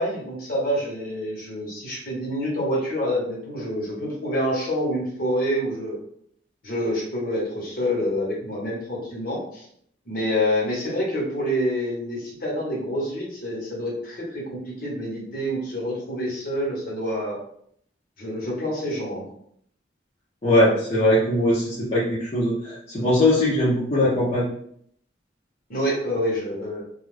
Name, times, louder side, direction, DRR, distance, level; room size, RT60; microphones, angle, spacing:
voice 1, 0.0-6.0 6.6-9.7 10.1-17.4 18.2-19.3 25.7-26.8, equal, 50° left, -4 dB, 1.0 m, -27 dB
voice 2, 20.4-24.5, left 1 dB, 35° left, -9 dB, 0.6 m, -20 dB
2.4 x 2.2 x 3.2 m, 0.66 s
head